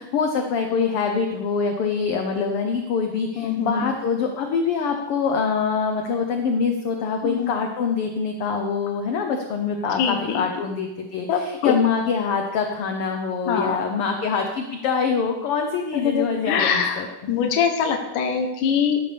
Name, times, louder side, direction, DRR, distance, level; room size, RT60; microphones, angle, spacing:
voice 1, 0.0-17.0 17.3-17.5, left 5 dB, 70° left, 4 dB, 1.4 m, -24 dB
voice 2, 3.4-3.9 7.2-7.5 10.0-10.5 11.3-11.7 13.5-13.8 15.9-19.0, left 7 dB, 85° left, 3 dB, 2.5 m, -23 dB
14.0 x 12.0 x 3.4 m, 0.98 s
omnidirectional pair, 3.6 m